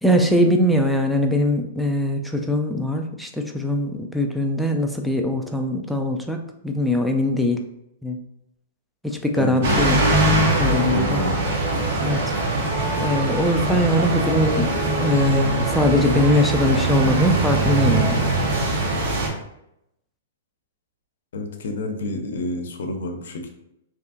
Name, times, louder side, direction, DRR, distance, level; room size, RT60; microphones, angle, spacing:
voice 1, 0.0-7.6 8.0-8.2 9.0-10.0 10.6-11.3 12.0-12.3 13.0-14.7 15.0-18.3, left 1 dB, ahead, 3 dB, 0.3 m, -21 dB
voice 2, 9.4-9.9 10.6-11.3 21.3-23.5, left 2 dB, 75° left, 5 dB, 0.5 m, -29 dB
sound 1, 9.6-19.3, right 2 dB, 60° right, 0.8 m, -22 dB
sound 2, 10.0-18.2, equal, 85° right, 0.9 m, -32 dB
2.8 x 2.3 x 2.5 m, 0.81 s
hypercardioid pair, 145°, 0 cm